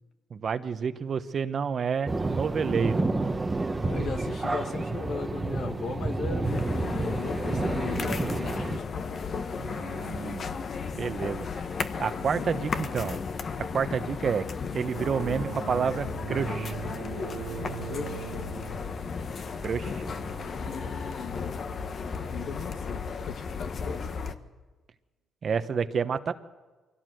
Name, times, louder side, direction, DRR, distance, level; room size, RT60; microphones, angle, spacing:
voice 1, 0.3-3.1 9.6-10.5 10.9-11.4 12.0-13.2 13.7-14.4 14.7-16.7 19.6-20.0 25.4-26.3, right 6 dB, 50° right, 1.2 m, -29 dB
sound 1, 2.0-8.8, right 2 dB, 20° right, 1.2 m, -29 dB
voice 2, 3.8-9.0 12.1-12.3 17.8-18.4 20.5-21.6 22.2-24.3, left 5 dB, 70° left, 2.0 m, -38 dB
sound 2, 6.4-24.4, left 5 dB, 50° left, 1.3 m, -34 dB
sound 3, 14.8-22.9, right 8 dB, 85° right, 1.4 m, -41 dB
23.5 x 17.0 x 8.0 m
cardioid pair, 90°, 0 cm